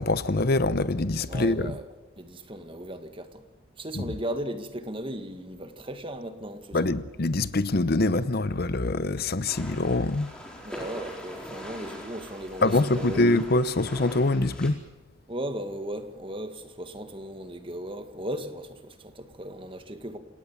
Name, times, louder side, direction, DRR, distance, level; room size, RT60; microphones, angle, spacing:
voice 1, 0.0-1.7 4.0-4.1 6.7-10.3 12.6-14.8, left 2 dB, 50° left, 0.8 m, -24 dB
voice 2, 1.3-1.9 2.2-3.4 3.8-6.9 10.6-13.3 15.3-20.2, right 1 dB, 25° right, 1.8 m, -36 dB
sound 1, 9.5-14.7, equal, 5° left, 4.5 m, -42 dB
28.5 x 18.0 x 7.3 m
head